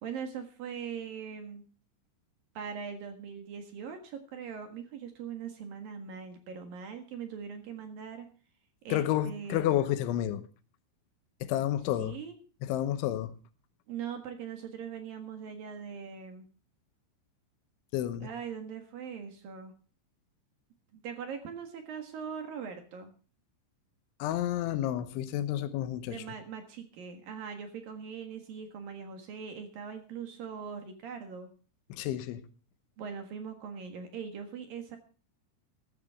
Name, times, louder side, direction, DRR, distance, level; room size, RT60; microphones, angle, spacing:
voice 1, 0.0-1.6 2.5-8.3 8.8-9.7 12.0-12.4 13.9-16.5 18.2-19.7 20.9-23.1 26.1-31.5 33.0-35.0, right 7 dB, 60° right, 2.8 m, -41 dB
voice 2, 8.9-10.5 11.4-12.2 12.6-13.3 17.9-18.3 24.2-26.2 31.9-32.4, left 12 dB, 80° left, 3.3 m, -30 dB
14.5 x 14.0 x 3.6 m
omnidirectional pair, 5.4 m